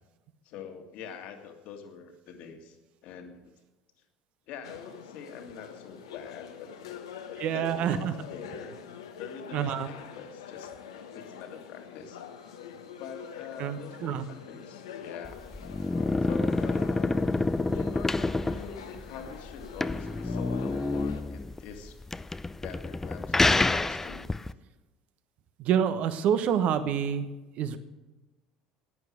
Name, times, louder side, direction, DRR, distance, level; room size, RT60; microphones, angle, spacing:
voice 1, 0.4-2.8 3.0-3.5 4.5-8.8 9.2-10.7 11.1-12.2 12.7-15.4 16.2-17.3 17.7-22.0 22.6-24.3, left 6 dB, 60° left, 5 dB, 1.9 m, -44 dB
sound 1, 4.6-21.2, left 8 dB, 80° left, 1.1 m, -45 dB
voice 2, 7.4-8.1 9.5-9.9 13.6-14.2 25.6-27.3 27.6-27.8, right 8 dB, 55° right, 11 dB, 1.1 m, -27 dB
sound 2, 15.3-24.5, left 2 dB, 15° left, 0.5 m, -28 dB
11.0 x 9.7 x 8.4 m, 1.1 s
hypercardioid pair, 70°, 3 cm